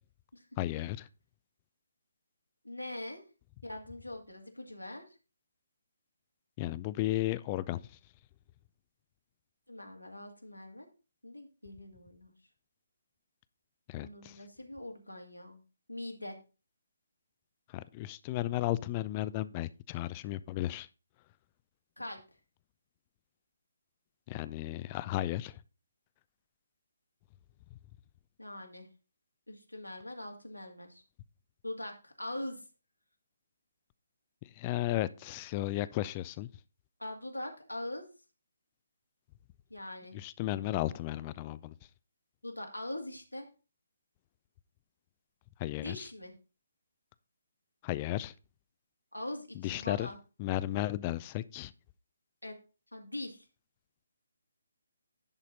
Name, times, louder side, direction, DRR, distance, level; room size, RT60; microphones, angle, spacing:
voice 1, 0.6-1.1 6.6-7.8 13.9-14.4 17.7-20.9 24.3-25.6 34.6-36.5 40.1-41.7 45.6-46.1 47.8-48.3 49.5-50.1 50.4-51.7, left 15 dB, 25° left, 0.4 m, -34 dB
voice 2, 2.6-3.2 3.6-5.1 9.7-10.9 11.2-12.3 14.0-15.6 15.9-16.4 22.0-22.2 28.4-28.9 29.5-31.0 31.6-32.6 37.0-38.1 39.7-40.2 42.4-43.5 45.8-46.3 49.1-50.2 52.4-52.6 52.9-53.5, left 1 dB, 85° left, 2.1 m, -42 dB
10.5 x 4.2 x 5.3 m
figure-of-eight pair, 140°, 0 cm